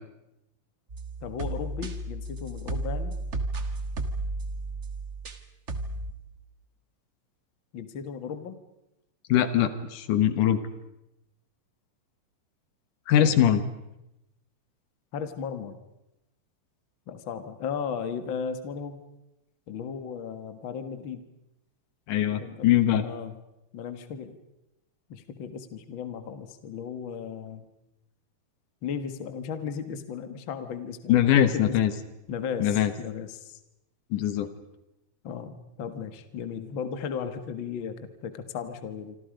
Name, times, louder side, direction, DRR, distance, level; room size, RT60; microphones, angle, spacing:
sound 1, 0.9-5.4 5.7-6.1, right 2 dB, 40° right, 1.0 m, -33 dB
voice 1, 1.2-3.1 7.7-8.6 13.2-13.6 15.1-15.8 17.1-19.0 19.7-21.2 22.2-23.4 23.7-24.4 25.1-27.7 28.8-31.8 32.3-33.6 35.2-38.0 38.2-39.1, left 7 dB, 45° left, 10 dB, 1.9 m, -36 dB
voice 2, 9.3-10.6 13.1-13.6 22.1-23.1 31.1-31.9 32.6-32.9 34.1-34.5, left 10 dB, 75° left, 11 dB, 2.7 m, -22 dB
26.5 x 26.5 x 5.2 m, 0.90 s
omnidirectional pair, 3.8 m